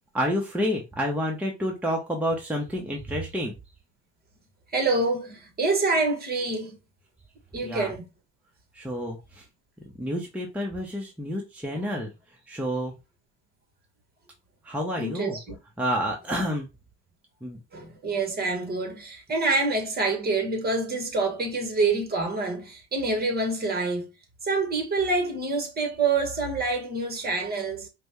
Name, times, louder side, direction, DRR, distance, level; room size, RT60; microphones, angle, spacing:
voice 1, 0.1-3.5 7.6-7.9 8.7-9.4 10.0-12.1 12.5-12.9 14.6-15.4 15.8-16.7 17.4-17.6, equal, 5° right, 0.9 m, -29 dB
voice 2, 4.7-6.8 7.5-8.0 15.0-15.6 17.7-24.1 24.4-27.9, right 3 dB, 30° right, 1.4 m, -26 dB
5.0 x 2.3 x 3.1 m
supercardioid pair, 95°, 30 cm